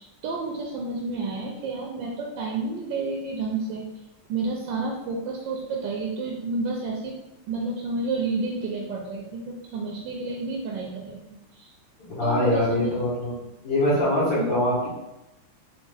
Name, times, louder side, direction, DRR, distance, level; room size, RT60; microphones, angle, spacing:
voice 1, 0.0-3.9 4.3-7.2 7.5-11.2 11.5-11.7 12.2-12.9 14.3-14.4, right 3 dB, 75° right, -1 dB, 1.2 m, -30 dB
voice 2, 12.2-13.4 13.6-14.9, left 1 dB, 60° left, -11 dB, 2.1 m, -23 dB
4.4 x 2.5 x 3.3 m, 0.94 s
omnidirectional pair, 2.3 m